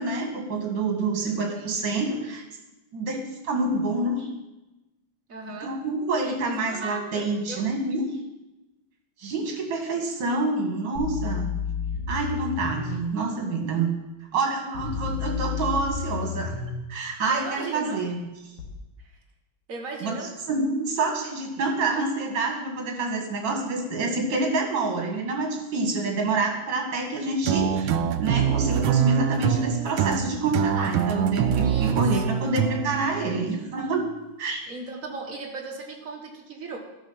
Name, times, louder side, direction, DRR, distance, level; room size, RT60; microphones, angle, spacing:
voice 1, 0.0-2.4 2.9-4.3 5.5-8.0 9.2-11.5 12.1-13.9 14.3-16.6 16.9-18.2 20.0-20.2 20.5-34.0 34.4-34.7, right 3 dB, 65° right, 2 dB, 2.4 m, -27 dB
voice 2, 5.3-5.8 6.2-7.7 17.3-18.0 19.0-19.1 19.7-20.3 31.6-32.4 34.7-36.8, right 3 dB, 45° right, 1 dB, 1.8 m, -37 dB
sound 1, 11.0-12.9 14.8-16.8 18.6-18.7, left 6 dB, 80° left, 2.4 m, -31 dB
sound 2, 27.5-33.9, right 9 dB, 85° right, 1.4 m, -25 dB
12.0 x 6.1 x 5.7 m, 1.0 s
omnidirectional pair, 2.2 m